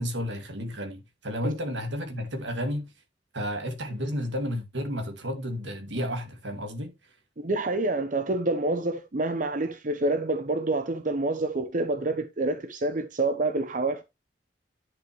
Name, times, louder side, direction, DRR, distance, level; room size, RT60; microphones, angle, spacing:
voice 1, 0.0-2.9 3.3-6.9, equal, 80° right, 2.3 m, -32 dB
voice 2, 7.4-14.0, right 2 dB, 45° right, 0.9 m, -27 dB
10.5 x 6.1 x 3.1 m
head